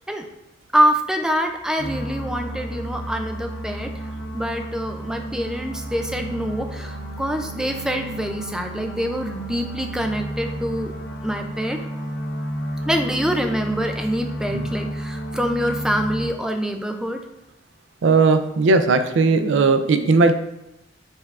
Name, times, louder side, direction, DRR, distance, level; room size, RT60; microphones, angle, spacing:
voice 1, 0.7-4.0 4.3-10.9 11.2-11.8 12.9-17.2, equal, 5° right, 5 dB, 0.3 m, -25 dB
sound 1, 1.8-16.3, right 1 dB, 80° left, 0.6 m, -32 dB
voice 2, 18.0-20.3, right 3 dB, 90° right, 9 dB, 0.4 m, -17 dB
5.3 x 3.4 x 2.4 m, 0.90 s
head